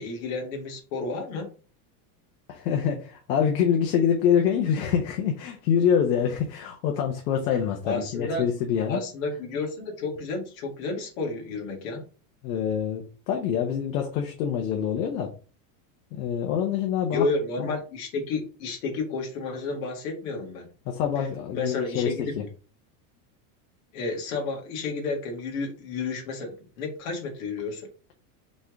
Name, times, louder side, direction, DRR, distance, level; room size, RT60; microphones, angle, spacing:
voice 1, 0.0-1.5 7.8-8.4 8.9-12.0 17.1-20.6 21.5-22.3 23.9-27.9, left 3 dB, 60° left, 1 dB, 1.7 m, -31 dB
voice 2, 2.5-9.0 12.4-15.3 16.1-17.3 17.6-17.7 20.9-22.4, left 8 dB, 85° left, 2 dB, 1.0 m, -25 dB
4.2 x 3.3 x 3.5 m, 0.36 s
supercardioid pair, 165°, 47 cm